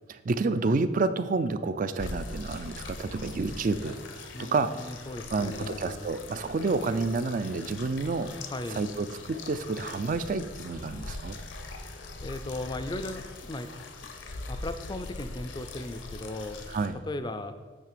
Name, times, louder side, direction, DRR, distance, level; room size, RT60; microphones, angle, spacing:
voice 1, 0.1-4.7 5.3-8.3 8.7-11.4 16.7-17.0, right 3 dB, 45° right, 12 dB, 0.4 m, -29 dB
sound 1, 2.0-16.9, left 2 dB, 75° left, 0.8 m, -41 dB
voice 2, 4.3-6.1 8.5-8.8 12.2-13.7 14.5-16.6 17.1-17.5, left 2 dB, 25° left, 10 dB, 0.4 m, -37 dB
9.0 x 3.3 x 6.6 m, 1.5 s
head